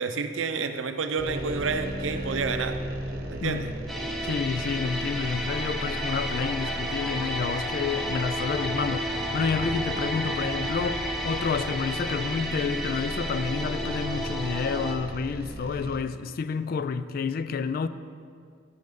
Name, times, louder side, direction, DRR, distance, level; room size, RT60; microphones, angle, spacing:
voice 1, 0.0-2.8 3.3-3.8, right 4 dB, 90° right, 0.5 m, -29 dB
sound 1, 1.2-16.0, equal, 50° right, 0.9 m, -36 dB
voice 2, 3.4-3.7 4.2-17.9, left 5 dB, 50° left, 0.3 m, -29 dB
sound 2, 3.9-15.0, equal, ahead, 0.6 m, -32 dB
9.8 x 7.7 x 3.7 m
head